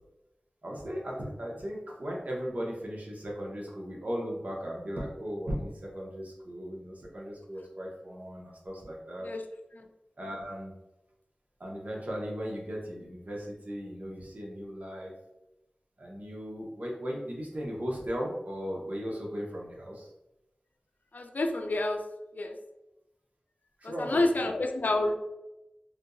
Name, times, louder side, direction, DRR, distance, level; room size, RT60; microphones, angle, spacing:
voice 1, 0.6-9.3 10.2-10.7 11.6-15.1 16.0-20.1 23.8-24.5, equal, 65° right, -2 dB, 0.9 m, -37 dB
voice 2, 21.1-22.0 22.3-22.6 23.8-25.1, left 2 dB, 80° left, 5 dB, 0.4 m, -29 dB
3.5 x 2.7 x 2.6 m, 0.93 s
wide cardioid pair, 55°, 3 cm